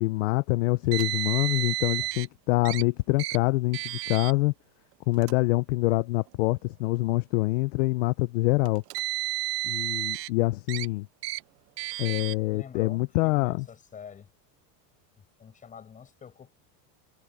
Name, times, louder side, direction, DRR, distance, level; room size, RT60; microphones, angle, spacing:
voice 1, 0.0-4.5 5.1-8.8 9.6-11.1 12.0-13.6, left 20 dB, 50° left, 0.5 m, -25 dB
Car, 0.9-2.3 2.6-2.8 3.2-3.4 3.7-4.3 5.1-5.3 6.3-6.4 8.7-10.3 10.7-10.9 11.2-11.4 11.8-12.3, right 19 dB, 75° right, 1.4 m, -31 dB
voice 2, 12.5-14.3 15.2-16.5, left 7 dB, 15° left, 7.6 m, -46 dB
supercardioid pair, 180°, 48 cm